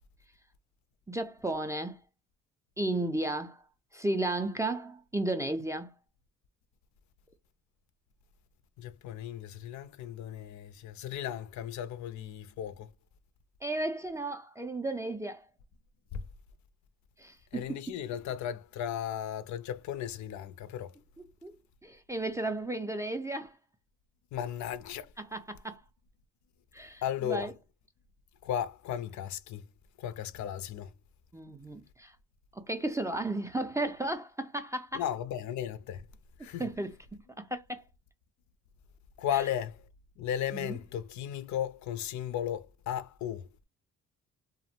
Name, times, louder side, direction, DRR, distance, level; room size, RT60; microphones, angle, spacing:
voice 1, 1.1-2.0 2.8-3.6 3.9-5.9 13.6-15.5 17.2-17.8 21.4-21.6 21.8-23.6 25.2-25.8 26.7-27.5 31.3-32.2 32.5-35.0 36.6-36.9 37.4-37.8 39.3-39.4 40.5-40.8, right 2 dB, 10° right, 0.3 m, -34 dB
voice 2, 8.8-12.9 16.1-16.2 17.5-20.9 24.3-25.1 27.0-27.5 28.4-29.6 30.0-30.9 34.9-36.1 36.4-36.6 39.2-39.8 40.2-43.5, left 10 dB, 70° left, 0.4 m, -35 dB
2.5 x 2.0 x 2.8 m
cardioid pair, 90°, 30 cm